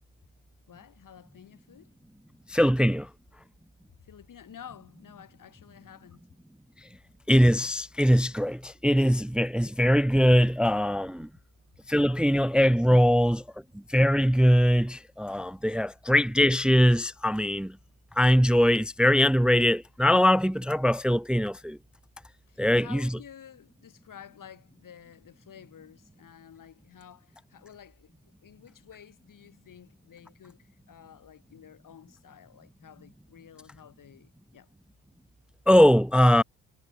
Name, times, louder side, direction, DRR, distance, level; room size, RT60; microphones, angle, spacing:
voice 1, 0.7-1.9 4.0-6.2 22.5-28.1 28.4-34.7, left 9 dB, 50° left, 4.9 m, -51 dB
voice 2, 2.5-3.1 7.3-11.3 11.9-13.4 13.9-17.8 18.2-21.8 22.6-23.1 35.7-36.4, equal, ahead, 0.6 m, -21 dB
hypercardioid pair, 55°, 41 cm